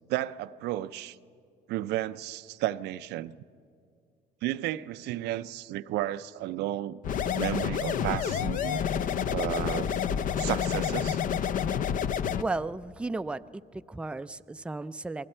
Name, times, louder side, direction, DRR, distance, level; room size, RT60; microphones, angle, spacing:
voice 1, 0.1-1.2 1.7-3.4 4.4-7.0 7.3-8.8 9.3-11.2, right 14 dB, 85° right, 0.5 m, -33 dB
sound 1, 7.0-12.4, left 8 dB, 50° left, 0.6 m, -29 dB
voice 2, 12.4-15.3, right 3 dB, 5° right, 0.4 m, -34 dB
28.5 x 20.5 x 4.4 m
cardioid pair, 110°, 17 cm